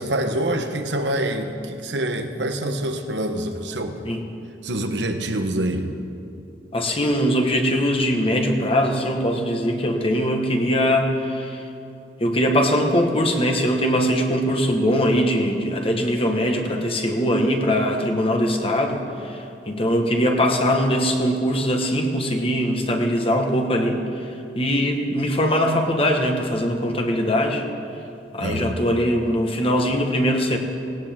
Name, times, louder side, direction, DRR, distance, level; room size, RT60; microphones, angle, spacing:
voice 1, 0.0-4.0 4.6-5.9 28.4-28.8, right 1 dB, 80° right, 6 dB, 1.2 m, -26 dB
voice 2, 6.7-11.6 12.2-24.3 24.5-27.6 28.3-30.6, equal, 30° left, 2 dB, 1.4 m, -21 dB
18.5 x 17.5 x 3.7 m, 2.7 s
head